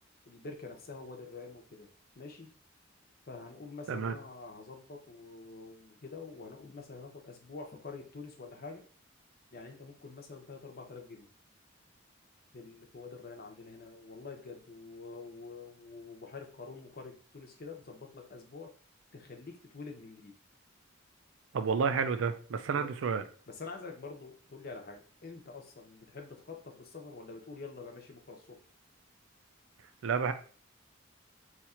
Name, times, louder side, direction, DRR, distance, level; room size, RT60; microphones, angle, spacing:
voice 1, 0.3-1.9 2.2-2.5 3.2-8.8 9.5-11.3 12.5-18.7 19.1-20.4 22.7-22.9 23.5-28.6, left 4 dB, 50° left, 3 dB, 0.7 m, -46 dB
voice 2, 21.5-23.2 30.0-30.3, right 5 dB, 85° right, 10 dB, 0.4 m, -30 dB
2.9 x 2.4 x 4.2 m, 0.41 s
head